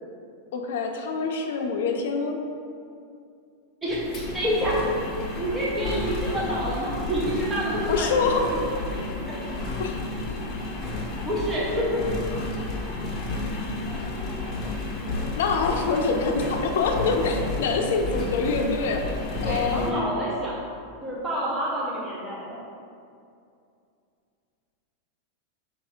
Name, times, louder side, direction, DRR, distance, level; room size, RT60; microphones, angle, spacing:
voice 1, 0.5-2.4 7.9-8.4 9.8-10.0 15.4-20.1, left 4 dB, 75° left, 2 dB, 0.4 m, -25 dB
voice 2, 3.8-5.0 5.4-8.1 11.3-12.0 19.4-20.6 21.0-22.6, equal, 10° right, -7 dB, 0.6 m, -28 dB
Engine, 3.9-19.9, left 2 dB, 25° left, 0.8 m, -31 dB
4.2 x 2.6 x 4.8 m, 2.4 s
supercardioid pair, 150°, 0 cm